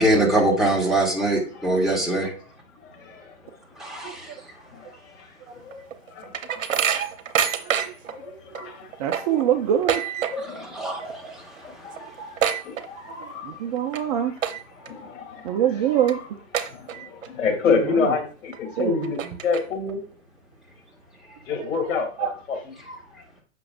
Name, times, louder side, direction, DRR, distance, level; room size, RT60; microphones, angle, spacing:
voice 1, 0.0-2.3 3.7-4.5 10.4-12.0, right 1 dB, ahead, 1.7 m, -24 dB
voice 2, 2.8-3.3 4.5-5.8 6.1-6.3 7.5-8.9 10.3-10.8 11.6-13.6 14.0-14.1 14.8-15.6 16.0-16.2 16.6-20.0 21.5-23.0, left 5 dB, 65° left, 2.9 m, -29 dB
sound 1, 5.7-8.1 8.5-8.6 8.9-10.6 10.9-11.3 11.6-11.7 11.9-13.3 13.8-14.0 14.4-14.9 15.4-15.5 16.1-16.2 16.5-17.3 17.7-17.8 18.5-18.6 19.0-19.9, right 8 dB, 65° right, 1.0 m, -26 dB
voice 3, 7.6-7.9 8.3-10.0 13.2-14.4 15.4-16.2 17.9-18.2 18.8-19.1 21.6-21.7 22.2-22.3, right 10 dB, 30° right, 0.5 m, -25 dB
7.5 x 5.9 x 2.4 m
hypercardioid pair, 125°, 40 cm